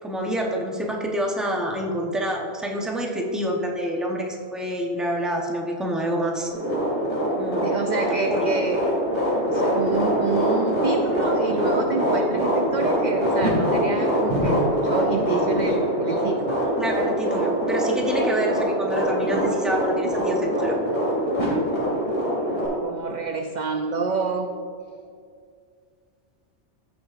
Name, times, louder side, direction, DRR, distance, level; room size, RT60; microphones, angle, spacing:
voice 1, 0.0-6.5 7.3-7.8 8.1-8.5 16.8-20.8, equal, ahead, 0 dB, 0.7 m, -27 dB
sound 1, 6.5-22.7, equal, 40° left, 2.4 m, -23 dB
voice 2, 7.6-8.8 9.4-16.6 22.8-24.5, right 5 dB, 60° right, 5 dB, 0.5 m, -28 dB
14.5 x 5.8 x 2.5 m, 2.2 s
omnidirectional pair, 1.2 m